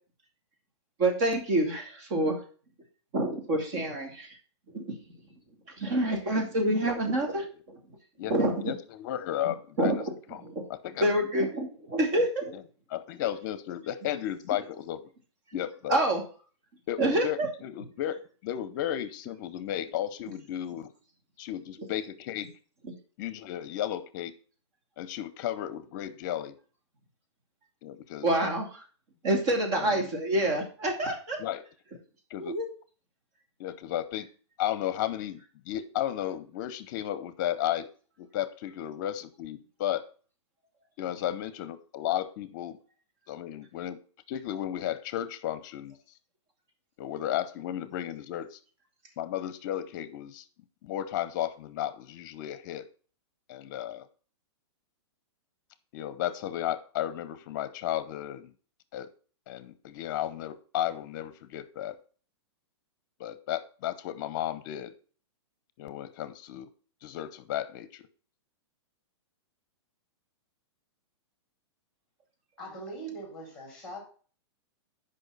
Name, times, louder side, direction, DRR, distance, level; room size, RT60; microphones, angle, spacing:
voice 1, 1.0-2.4 3.1-4.4 4.7-4.9 5.8-7.8 8.3-8.7 9.8-10.0 10.4-10.6 11.0-12.6 15.9-16.2 17.0-17.5 22.8-22.9 28.2-28.8 29.2-31.4 32.4-32.7, right 1 dB, 35° right, 2 dB, 2.4 m, -27 dB
voice 2, 8.6-9.9 10.3-10.4 10.8-11.0 12.9-15.0 15.5-16.0 16.9-20.9 21.4-22.5 23.2-24.3 25.0-26.6 27.8-28.3 29.7-30.1 31.4-31.6 32.3-32.6 33.6-34.3 34.6-35.4 35.7-37.9 38.2-40.1 41.0-42.8 43.3-44.0 44.3-45.9 47.0-48.6 49.2-50.4 50.8-52.9 53.5-54.1 55.9-58.5 58.9-59.1 59.5-62.0 63.2-64.9 65.8-66.7 67.0-68.1, left 12 dB, 40° left, 15 dB, 0.8 m, -34 dB
voice 3, 72.6-74.0, right 2 dB, 5° left, 0 dB, 3.6 m, -41 dB
6.3 x 5.4 x 6.7 m, 0.40 s
hypercardioid pair, 155°, 15 cm